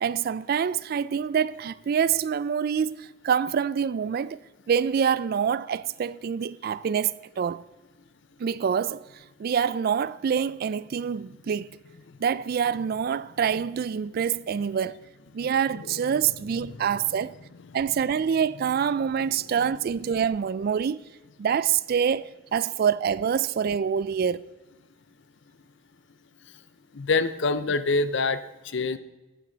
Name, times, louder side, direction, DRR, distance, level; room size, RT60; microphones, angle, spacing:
voice 1, 0.0-4.4 4.7-7.6 8.4-9.0 9.4-11.8 12.2-15.0 15.3-17.3 17.7-21.0 21.4-24.4, right 7 dB, 50° right, 0.3 m, -26 dB
voice 2, 26.9-28.4 28.6-29.0, left 3 dB, 60° left, 0.6 m, -26 dB
13.5 x 9.1 x 3.9 m
head